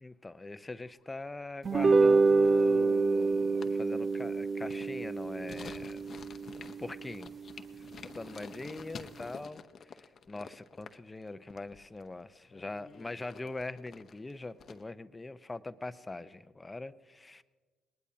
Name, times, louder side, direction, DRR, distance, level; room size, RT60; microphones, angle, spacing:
voice 1, 0.0-6.0 6.8-7.3 7.8-17.4, left 2 dB, 20° left, 13 dB, 0.7 m, -42 dB
sound 1, 0.9-1.4 1.7-1.8 2.0-14.8, left 6 dB, 50° left, 0.8 m, -51 dB
sound 2, 1.6-8.2, right 3 dB, 40° right, 0.5 m, -28 dB
20.5 x 19.5 x 2.8 m, 1.4 s
supercardioid pair, 65°, 0 cm